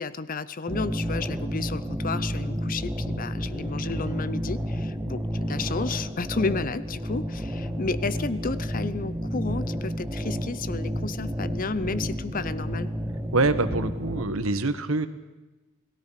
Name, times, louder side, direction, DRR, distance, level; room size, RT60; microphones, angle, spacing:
voice 1, 0.0-12.9, left 4 dB, 40° left, 16 dB, 0.7 m, -32 dB
sound 1, 0.7-14.2, equal, 10° right, 1.7 m, -31 dB
voice 2, 13.3-15.1, right 3 dB, 70° right, 11 dB, 1.4 m, -25 dB
29.0 x 18.5 x 5.8 m, 1.1 s
head